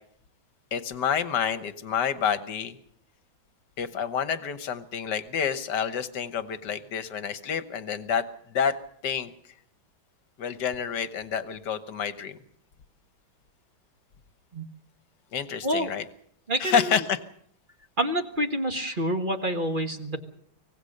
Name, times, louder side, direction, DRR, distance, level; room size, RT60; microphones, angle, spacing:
voice 1, 0.7-2.8 3.8-8.8 9.0-9.3 10.4-12.4 15.3-16.0 16.6-17.2, left 7 dB, 60° left, 12 dB, 1.7 m, -28 dB
voice 2, 16.5-17.0 18.0-20.2, right 1 dB, 30° right, 6 dB, 1.5 m, -27 dB
25.0 x 18.0 x 6.6 m, 0.67 s
omnidirectional pair, 2.2 m